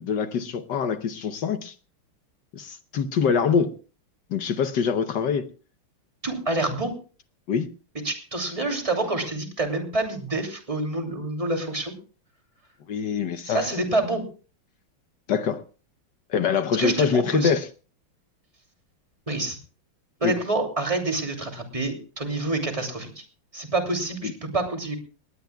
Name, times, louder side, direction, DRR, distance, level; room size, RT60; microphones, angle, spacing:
voice 1, 0.0-1.7 2.5-3.7 4.3-5.5 7.5-7.7 12.9-13.7 15.3-15.6 16.3-17.7 20.2-20.4 24.2-24.3, left 6 dB, 60° left, 10 dB, 1.3 m, -24 dB
voice 2, 6.2-6.9 8.0-11.9 13.5-14.2 16.8-17.5 19.3-19.6 20.2-23.2 23.5-25.0, right 2 dB, 15° right, 3 dB, 2.8 m, -27 dB
20.0 x 18.5 x 2.3 m, 0.36 s
omnidirectional pair, 2.4 m